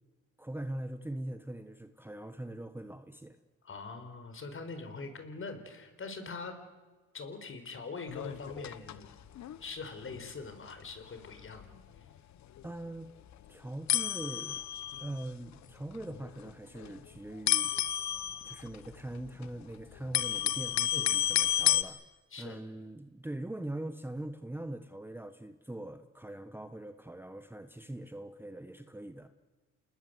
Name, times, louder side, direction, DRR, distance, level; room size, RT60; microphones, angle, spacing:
voice 1, 0.4-3.4 12.6-13.1 13.5-14.6 15.0-17.7 18.4-22.0 22.4-29.3, right 1 dB, 5° right, 9 dB, 1.2 m, -42 dB
voice 2, 3.6-6.6 7.1-9.1 9.6-11.7 12.0-12.1 20.9-21.1 22.3-22.6, left 4 dB, 45° left, 7 dB, 4.9 m, -43 dB
sound 1, 8.1-9.1 9.4-9.6 10.1-10.3 10.7-10.8 11.2-11.3 11.5-11.8 12.6-12.7 13.3-13.4 13.9-15.2 16.0-16.5 16.8-17.0 17.5-19.5 19.8-21.8, left 11 dB, 65° left, 1.2 m, -31 dB
28.5 x 20.0 x 8.0 m, 1.3 s
cardioid pair, 90°, 30 cm